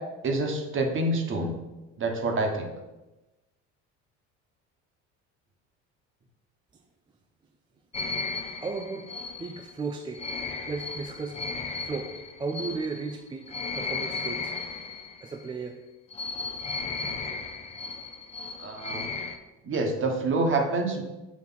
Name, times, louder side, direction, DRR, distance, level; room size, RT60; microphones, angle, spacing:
voice 1, 0.2-1.5 2.0-2.7 18.6-19.1 19.6-21.0, right 2 dB, 40° right, 3 dB, 1.2 m, -27 dB
sound 1, 7.9-15.5 16.1-19.4, left 4 dB, 20° left, 0.6 m, -35 dB
voice 2, 8.6-9.1 9.4-10.3 10.7-11.4 11.8-14.5 15.2-15.8, right 4 dB, 15° right, 4 dB, 0.4 m, -35 dB
6.2 x 3.0 x 5.6 m, 1.0 s
supercardioid pair, 100°, 31 cm